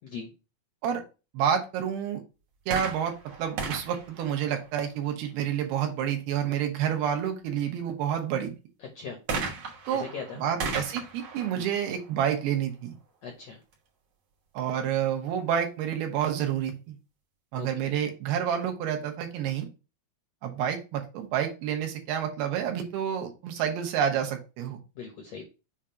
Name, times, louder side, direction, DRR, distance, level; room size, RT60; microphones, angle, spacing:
voice 1, 1.3-2.2 2.7-3.1 3.4-8.5 9.9-10.1 10.4-12.9 14.5-17.0 17.5-19.7 20.4-24.8, right 9 dB, 80° right, 3 dB, 3.0 m, -29 dB
sound 1, 2.6-5.2 9.3-12.9 13.7-13.8, right 4 dB, 65° right, 1.6 m, -36 dB
voice 2, 9.9-10.4 11.5-11.7 13.2-13.6 17.5-17.7 25.0-25.4, left 5 dB, 75° left, 2 dB, 1.5 m, -39 dB
7.2 x 2.5 x 5.6 m, 0.30 s
omnidirectional pair, 4.4 m